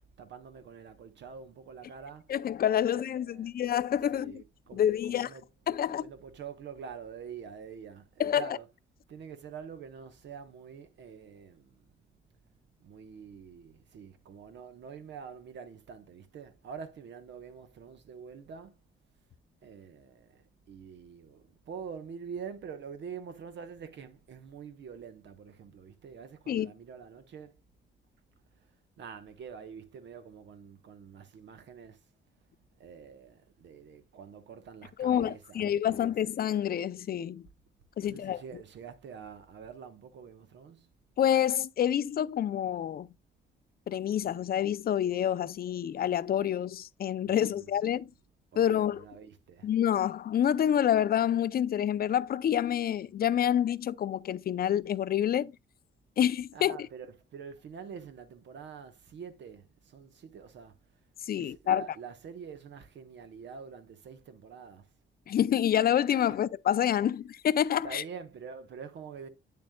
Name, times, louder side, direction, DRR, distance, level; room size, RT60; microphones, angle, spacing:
voice 1, 0.2-2.5 2.8-3.5 4.0-8.7 9.1-11.8 12.8-18.8 19.6-27.6 28.6-32.0 32.8-36.2 38.0-40.9 47.2-48.1 48.5-49.7 56.5-60.8 61.3-64.9 67.8-69.3, right 6 dB, 65° right, 1.1 m, -46 dB
voice 2, 2.3-4.3 4.7-5.3 5.7-6.0 8.2-8.5 26.5-26.7 35.0-37.5 38.0-38.4 41.2-43.1 43.9-48.1 48.6-49.0 49.6-55.5 56.2-56.8 61.3-61.8 65.3-68.0, left 10 dB, 50° left, 0.5 m, -27 dB
8.6 x 7.0 x 2.3 m
cardioid pair, 90°, 20 cm